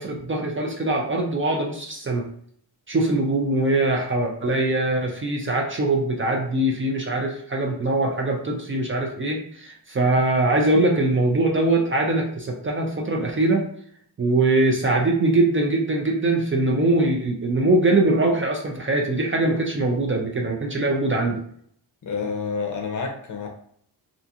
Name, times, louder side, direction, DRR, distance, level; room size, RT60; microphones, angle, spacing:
voice 1, 0.0-2.2 2.9-13.7 14.2-21.4, right 2 dB, 35° right, 0 dB, 0.4 m, -22 dB
voice 2, 22.0-23.5, left 5 dB, 50° left, 2 dB, 0.6 m, -28 dB
2.4 x 2.3 x 2.6 m, 0.62 s
wide cardioid pair, 125°, 40 cm